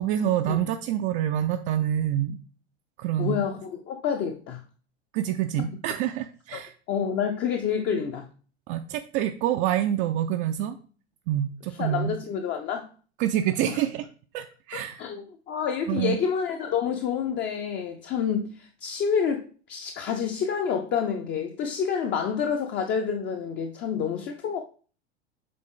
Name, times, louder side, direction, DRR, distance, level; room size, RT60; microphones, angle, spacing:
voice 1, 0.0-2.4 3.0-3.4 5.1-6.7 8.7-10.8 11.3-12.2 13.2-14.1 14.3-15.0 15.9-16.2, right 11 dB, 35° right, 5 dB, 0.5 m, -27 dB
voice 2, 3.2-4.6 6.5-6.6 6.9-8.3 11.8-12.9 13.7-13.8 14.7-24.6, left 7 dB, 30° left, 3 dB, 0.7 m, -28 dB
7.6 x 3.8 x 3.8 m, 0.40 s
figure-of-eight pair, 90°, 34 cm